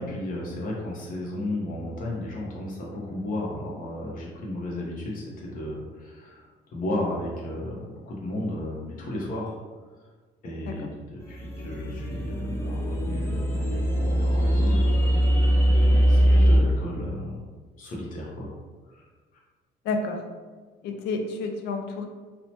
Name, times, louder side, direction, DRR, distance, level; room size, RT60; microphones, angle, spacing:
voice 1, 0.0-6.4 6.7-9.6 10.0-10.1 10.4-14.9 15.6-17.4 17.8-18.5 18.9-19.0, left 1 dB, 55° left, -3 dB, 0.8 m, -34 dB
sound 1, 11.3-16.6, equal, 15° left, 0.5 m, -21 dB
voice 2, 19.9-20.2 20.8-22.1, left 3 dB, 80° left, 5 dB, 0.4 m, -29 dB
2.8 x 2.1 x 2.8 m, 1.4 s
cardioid pair, 110°, 17 cm